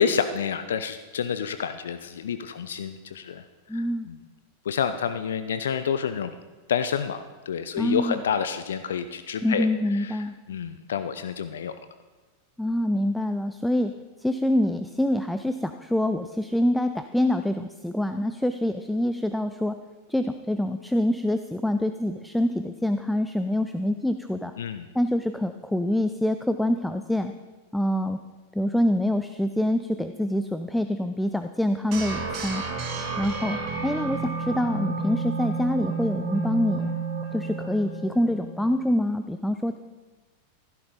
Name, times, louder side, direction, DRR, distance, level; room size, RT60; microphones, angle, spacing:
voice 1, 0.0-3.4 3.7-4.2 4.6-6.3 6.7-11.7 24.6-24.9, left 7 dB, 65° left, 11 dB, 0.5 m, -29 dB
voice 2, 3.7-4.1 7.8-8.2 9.4-10.4 12.6-19.8 20.1-24.5 24.9-27.3 27.7-28.2 28.5-32.6 33.2-36.9 37.3-39.8, left 1 dB, 5° left, 9 dB, 0.5 m, -26 dB
sound 1, 31.9-38.8, right 4 dB, 40° right, 2.4 m, -31 dB
15.0 x 12.5 x 3.8 m, 1.3 s
figure-of-eight pair, 90°, 0 cm